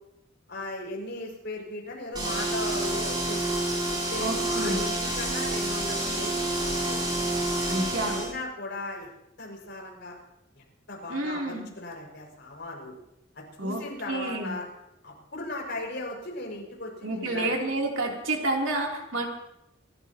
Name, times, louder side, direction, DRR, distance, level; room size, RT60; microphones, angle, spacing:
voice 1, 0.5-3.4 3.9-7.0 8.1-9.1 9.4-10.1 10.5-12.9 13.3-14.7 15.0-17.6, left 2 dB, 60° left, -1 dB, 6.1 m, -37 dB
sound 1, 2.1-8.3, right 1 dB, 20° right, 5.6 m, -28 dB
voice 2, 4.2-4.8 7.7-8.2 11.1-11.7 13.6-13.8 14.1-14.6 17.0-19.3, right 2 dB, 70° right, -1 dB, 3.4 m, -29 dB
27.5 x 14.5 x 3.0 m, 0.84 s
head